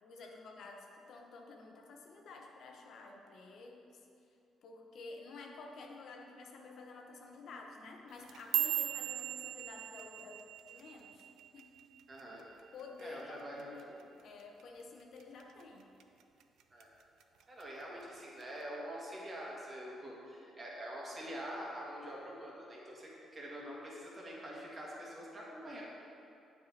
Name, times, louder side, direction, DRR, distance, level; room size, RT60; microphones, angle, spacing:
voice 1, 0.0-4.0 4.6-11.3 11.5-11.7 12.4-14.0 14.2-15.9, left 3 dB, 70° left, 1 dB, 0.8 m, -51 dB
sound 1, 8.1-12.5 12.8-13.2 13.6-14.0 14.4-14.6 15.2-15.6 16.0-16.8 17.2-17.6 18.4-18.5, right 11 dB, 80° right, 0.4 m, -38 dB
voice 2, 12.1-12.4 13.0-14.0 16.7-16.9 17.5-25.8, equal, 35° right, -4 dB, 1.7 m, -45 dB
8.1 x 4.8 x 4.1 m, 2.6 s
cardioid pair, 90°, 0 cm